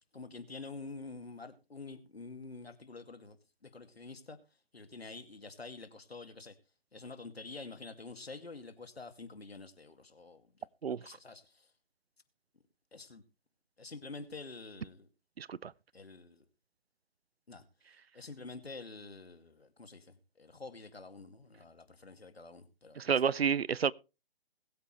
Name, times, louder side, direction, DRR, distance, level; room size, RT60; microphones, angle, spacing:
voice 1, 0.1-4.4 4.7-6.6 6.9-11.7 12.9-13.2 13.8-15.1 15.9-16.4 17.5-17.6 18.1-23.2, left 3 dB, 85° left, 2.3 m, -48 dB
voice 2, 15.4-15.7 23.0-23.9, right 7 dB, 80° right, 0.6 m, -30 dB
21.5 x 8.6 x 3.2 m
figure-of-eight pair, 150°, 30 cm